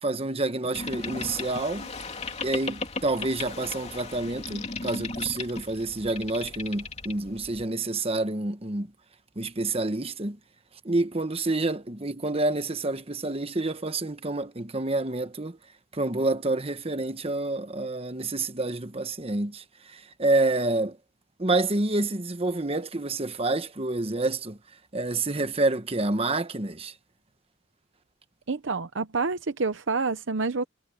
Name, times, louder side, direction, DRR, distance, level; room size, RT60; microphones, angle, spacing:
voice 1, 0.0-1.9 2.4-8.9 9.4-10.4 10.8-15.6 15.9-21.0 21.4-24.6 24.9-26.9, right 2 dB, 30° right, 1.2 m, -28 dB
Boat Water vehicle, 0.7-7.7, left 3 dB, 35° left, 2.9 m, -36 dB
voice 2, 28.5-30.6, right 4 dB, 65° right, 0.8 m, -28 dB
head